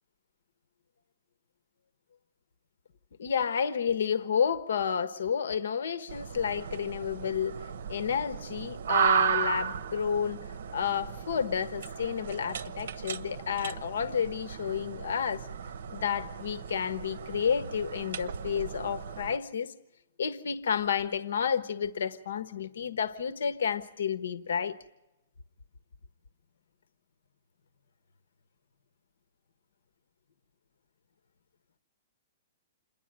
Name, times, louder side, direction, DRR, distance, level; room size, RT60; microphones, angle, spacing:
voice 1, 3.2-7.5 7.9-10.4 10.7-15.5 15.9-19.7 20.2-24.8, left 7 dB, 80° left, 11 dB, 1.2 m, -30 dB
sound 1, 6.1-19.4, right 7 dB, 70° right, 1.0 m, -34 dB
28.0 x 11.0 x 8.9 m, 0.96 s
hypercardioid pair, 170°, 0 cm